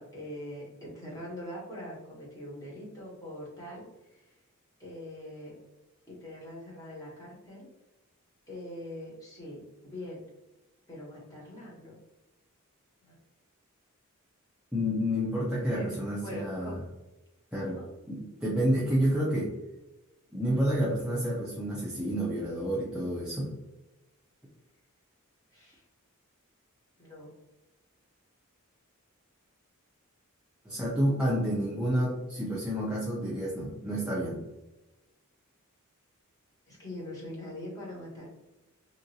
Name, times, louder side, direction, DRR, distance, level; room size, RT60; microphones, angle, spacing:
voice 1, 0.0-4.2 4.8-5.5 6.1-7.7 8.5-10.2 10.9-12.0 13.0-13.2 15.7-16.8 17.6-17.9 25.5-25.8 27.0-27.3 36.7-38.3, left 1 dB, 15° left, -5 dB, 1.0 m, -43 dB
voice 2, 14.7-16.8 17.5-17.8 18.1-19.5 20.3-23.5 30.7-34.4, equal, 5° right, -7 dB, 0.4 m, -29 dB
2.9 x 2.5 x 2.7 m, 1.0 s
head